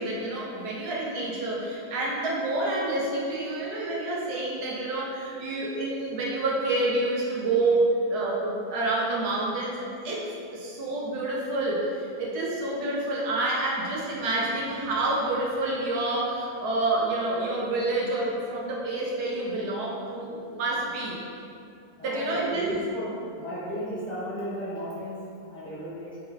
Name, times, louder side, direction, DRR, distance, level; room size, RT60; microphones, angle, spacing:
voice 1, 0.0-21.2 22.0-22.7, right 2 dB, 90° right, -4 dB, 1.4 m, -28 dB
voice 2, 22.0-23.1 23.4-25.1 25.5-26.1, equal, 5° left, -11 dB, 0.8 m, -34 dB
4.4 x 2.7 x 3.9 m, 2.5 s
omnidirectional pair, 1.6 m